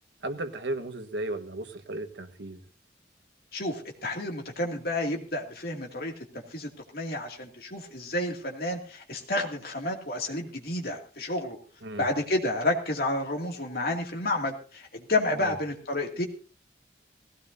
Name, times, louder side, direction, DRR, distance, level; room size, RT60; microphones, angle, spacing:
voice 1, 0.2-2.6 11.8-12.1 15.4-15.5, right 2 dB, 80° right, 1.3 m, -35 dB
voice 2, 3.5-11.6 12.0-16.3, left 2 dB, 55° left, 2.4 m, -30 dB
18.5 x 16.0 x 2.7 m
head